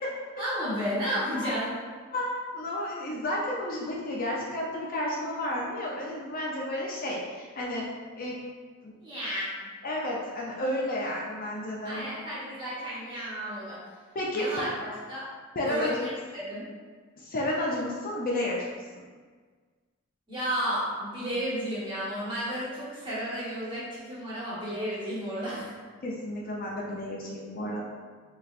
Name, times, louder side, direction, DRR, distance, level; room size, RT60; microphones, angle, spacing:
voice 1, 0.4-1.7 9.0-9.7 11.8-13.8 14.3-15.3 15.6-16.7 20.3-25.7, equal, 25° right, -9 dB, 1.3 m, -32 dB
voice 2, 2.1-7.9 8.2-8.4 8.8-9.0 9.8-12.1 14.1-14.7 15.6-15.9 17.2-18.7 18.9-19.0 26.0-27.8, left 1 dB, 40° left, -3 dB, 0.5 m, -31 dB
4.1 x 3.1 x 2.5 m, 1.5 s
head